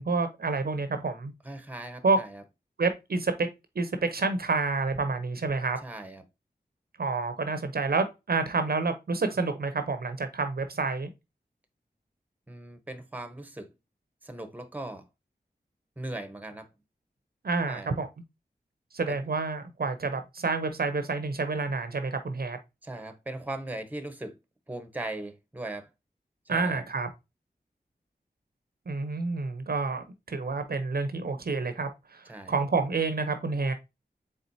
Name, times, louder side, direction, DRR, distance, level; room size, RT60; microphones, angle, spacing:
voice 1, 0.0-1.3 2.0-2.2 2.8-3.5 3.8-5.8 7.0-11.1 17.4-18.1 18.9-22.6 26.5-27.1 28.9-33.7, right 3 dB, 65° right, 0.6 m, -29 dB
voice 2, 1.4-2.4 5.8-6.2 12.5-13.7 14.2-15.0 16.0-16.7 17.7-17.9 22.8-24.3 24.7-25.9 26.5-26.8 32.3-32.5, right 2 dB, 10° right, 0.9 m, -38 dB
4.3 x 3.6 x 2.6 m
cardioid pair, 45°, 17 cm